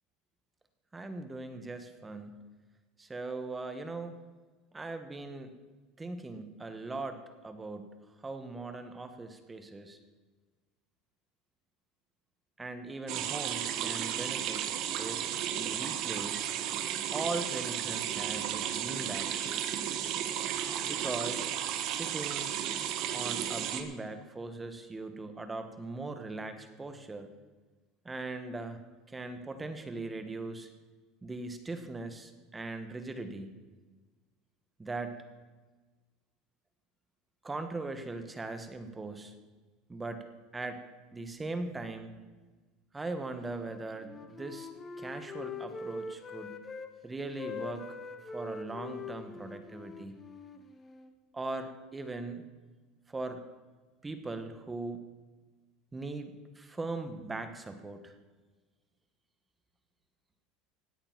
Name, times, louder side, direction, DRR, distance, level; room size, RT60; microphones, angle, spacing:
voice 1, 0.9-2.4 3.0-4.2 4.7-5.5 6.0-10.0 12.6-16.7 17.1-19.4 20.8-21.5 21.9-22.5 23.1-27.3 28.0-28.8 29.1-30.7 31.2-33.5 34.8-35.2 37.4-39.3 39.9-40.3 40.5-40.8 41.1-42.1 42.9-44.7 45.0-46.6 47.0-48.0 48.3-50.2 51.3-52.4 53.1-53.4 54.0-55.0 55.9-58.2, right 3 dB, 10° right, 8 dB, 1.2 m, -40 dB
sound 1, 13.1-23.8, right 10 dB, 50° right, 1.4 m, -34 dB
Wind instrument woodwind instrument, 43.5-46.9 47.2-51.1, left 4 dB, 20° left, 1.1 m, -43 dB
16.5 x 9.8 x 5.9 m, 1.3 s
cardioid pair, 150°, 0 cm